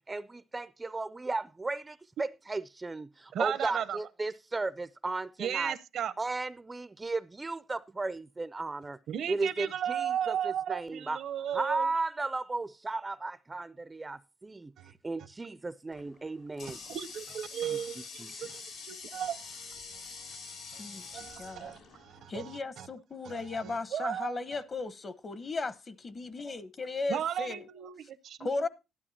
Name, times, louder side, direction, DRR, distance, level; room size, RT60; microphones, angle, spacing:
voice 1, 0.1-5.7 6.2-9.0 9.3-11.2 11.5-14.7 15.0-16.8 18.2-18.3, right 3 dB, 20° right, 0.5 m, -35 dB
voice 2, 3.3-4.0 5.4-6.1 9.1-11.9 14.8-14.9 16.9-18.1 18.4-22.9 23.2-24.4 27.1-28.7, right 9 dB, 75° right, 0.8 m, -36 dB
Water tap faucet, 15.9-22.4, left 5 dB, 80° left, 5.3 m, -46 dB
voice 3, 20.8-21.7 22.3-27.7 28.4-28.7, left 3 dB, 40° left, 1.0 m, -36 dB
12.5 x 12.0 x 2.8 m
cardioid pair, 90°, 0 cm